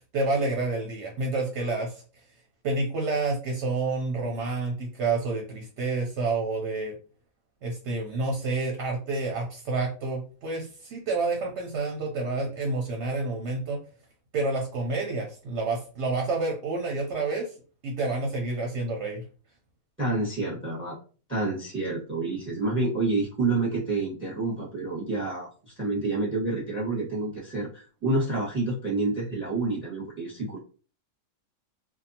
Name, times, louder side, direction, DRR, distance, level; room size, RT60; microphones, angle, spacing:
voice 1, 0.1-2.0 2.6-6.9 7.6-13.8 14.3-17.5 17.8-19.2, right 3 dB, 60° right, 1 dB, 0.8 m, -29 dB
voice 2, 20.0-21.0 21.3-25.5 25.8-30.6, right 2 dB, 10° right, -5 dB, 0.9 m, -28 dB
2.7 x 2.3 x 2.7 m, 0.38 s
omnidirectional pair, 1.5 m